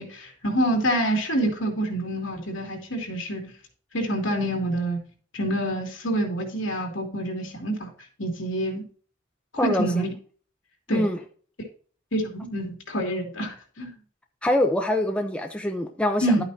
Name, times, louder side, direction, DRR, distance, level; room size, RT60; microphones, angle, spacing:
voice 1, 0.0-3.5 3.9-5.0 5.3-7.9 8.2-8.8 9.5-10.1 10.9-11.1 12.1-13.9 16.2-16.4, right 1 dB, 75° left, 1 dB, 2.7 m, -27 dB
voice 2, 9.6-10.1 10.9-11.2 14.4-16.4, left 1 dB, 5° left, 3 dB, 0.8 m, -24 dB
11.5 x 8.6 x 2.8 m, 0.42 s
head